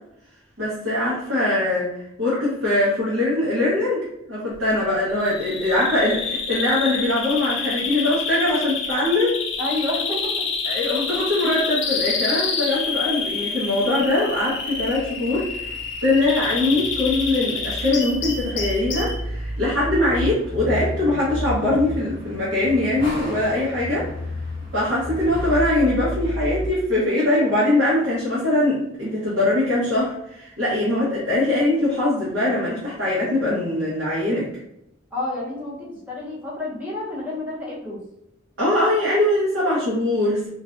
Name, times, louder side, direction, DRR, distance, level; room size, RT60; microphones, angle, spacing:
voice 1, 0.6-1.9 2.2-4.0 4.3-9.4 10.6-15.7 16.0-24.1 24.7-34.5 38.6-40.5, left 1 dB, 70° right, -9 dB, 0.9 m, -22 dB
Bird vocalization bird call bird song, 5.2-19.2, left 5 dB, 65° left, 0.5 m, -28 dB
voice 2, 9.6-10.5 35.1-38.0, left 2 dB, 10° right, -7 dB, 0.7 m, -29 dB
sound 1, 14.5-26.7, equal, 25° left, 0.7 m, -32 dB
2.5 x 2.1 x 2.4 m, 0.80 s
head